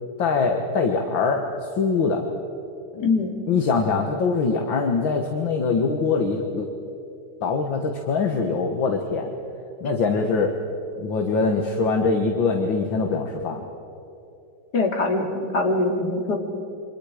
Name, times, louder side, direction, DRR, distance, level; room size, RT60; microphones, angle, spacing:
voice 1, 0.2-1.4 1.8-2.2 2.9-3.1 3.5-6.7 7.4-9.3 9.8-10.5 11.0-13.6, left 4 dB, 65° left, 3 dB, 2.2 m, -23 dB
voice 2, 3.0-3.3 14.7-15.3 15.5-16.4, left 3 dB, 50° left, 1 dB, 3.2 m, -22 dB
29.5 x 25.0 x 5.1 m, 2.8 s
omnidirectional pair, 2.3 m